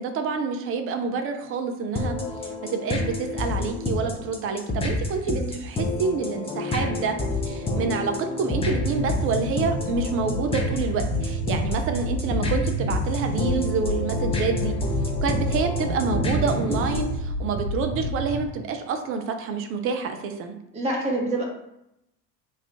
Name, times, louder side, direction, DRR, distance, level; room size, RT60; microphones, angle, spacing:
voice 1, 0.0-2.2 2.4-7.2 7.4-14.8 15.2-20.6, right 5 dB, 30° right, 6 dB, 0.4 m, -28 dB
sound 1, 2.0-17.2, left 2 dB, 10° left, 0.6 m, -29 dB
sound 2, 8.5-18.4, equal, 90° right, 0.6 m, -29 dB
voice 2, 20.7-21.4, right 2 dB, 15° right, -2 dB, 0.9 m, -27 dB
2.9 x 2.3 x 3.5 m, 0.83 s
figure-of-eight pair, 65°, 49 cm